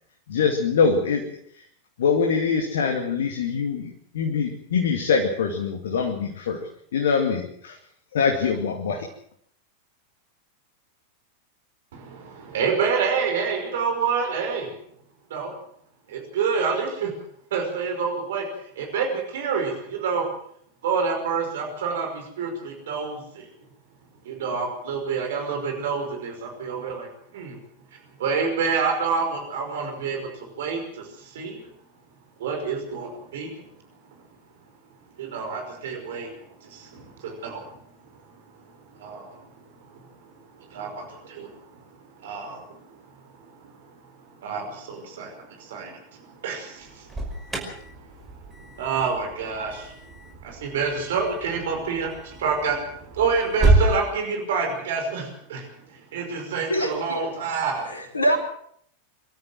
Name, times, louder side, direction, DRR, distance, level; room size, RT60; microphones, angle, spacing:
voice 1, 0.3-1.6 2.0-7.8 8.1-9.1, left 5 dB, 60° left, 3 dB, 2.4 m, -24 dB
voice 2, 11.9-14.7 15.3-15.5 16.1-17.1 17.5-20.3 20.8-23.5 24.3-27.6 28.2-31.6 32.4-33.5 35.2-36.3 36.6-37.8 38.9-39.4 39.9-40.0 40.6-41.8 42.2-42.6 43.4-43.9 44.4-47.6 47.9-57.9, right 5 dB, 60° right, 3 dB, 5.3 m, -28 dB
Alarm, 46.8-53.9, right 2 dB, 10° right, 5.5 m, -28 dB
voice 3, 56.7-57.3 57.8-58.4, equal, 80° left, 3 dB, 4.4 m, -24 dB
25.5 x 13.0 x 7.8 m, 0.66 s
figure-of-eight pair, 90°, 0 cm